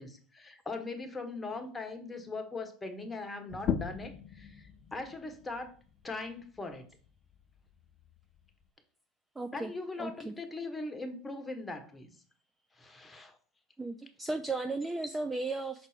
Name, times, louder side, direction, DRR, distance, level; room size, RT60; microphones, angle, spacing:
voice 1, 0.0-5.7 6.0-6.9 9.5-12.1 12.8-13.4, left 3 dB, 15° left, 1.3 m, -40 dB
sound 1, 3.5-8.7, left 8 dB, 45° left, 0.5 m, -40 dB
voice 2, 9.4-9.7 10.0-10.3 13.8-15.9, right 3 dB, 10° right, 0.5 m, -35 dB
6.1 x 4.3 x 5.1 m
hypercardioid pair, 100°, 0 cm